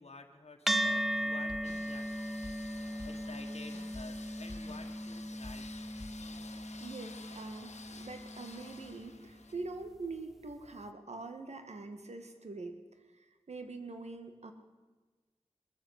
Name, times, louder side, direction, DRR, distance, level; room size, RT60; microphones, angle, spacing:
voice 1, 0.0-2.3 3.0-5.7, left 3 dB, 70° left, 4 dB, 1.6 m, -51 dB
sound 1, 0.7-9.3, equal, ahead, 0.6 m, -37 dB
sound 2, 1.2-6.3, left 2 dB, 40° left, 1.9 m, -51 dB
sound 3, 1.6-9.5, left 4 dB, 90° left, 1.2 m, -52 dB
voice 2, 6.8-12.8 13.2-14.5, right 3 dB, 75° right, 6 dB, 1.6 m, -44 dB
20.5 x 7.7 x 8.1 m, 1.3 s
cardioid pair, 40°, 11 cm